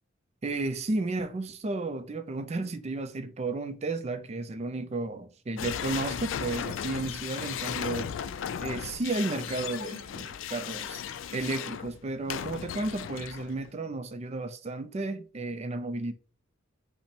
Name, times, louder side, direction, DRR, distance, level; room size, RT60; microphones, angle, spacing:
voice 1, 0.4-8.2 8.6-16.1, right 2 dB, 35° right, 0.4 m, -33 dB
sound 1, 5.6-13.7, left 8 dB, 75° left, 0.3 m, -36 dB
5.6 x 2.1 x 4.3 m
head